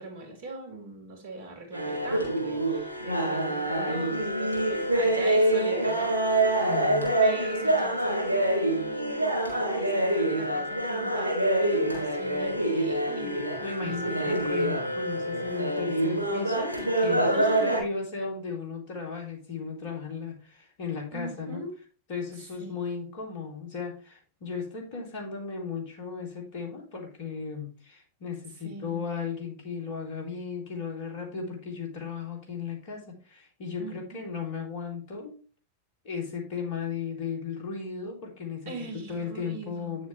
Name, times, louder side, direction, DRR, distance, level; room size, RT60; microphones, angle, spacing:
voice 1, 0.0-6.4 7.2-13.4 13.8-14.5 17.3-18.0 21.1-21.7 22.6-22.9 28.6-29.1 33.8-34.3 38.7-40.0, right 3 dB, 55° right, 3 dB, 2.7 m, -41 dB
sound 1, 1.7-17.8, right 1 dB, 85° left, 3.9 m, -26 dB
voice 2, 6.6-7.1 13.6-21.6 22.1-35.4 36.0-38.7 39.1-40.1, left 5 dB, 50° left, 2 dB, 3.1 m, -36 dB
9.2 x 7.3 x 3.2 m, 0.36 s
figure-of-eight pair, 90°, 0 cm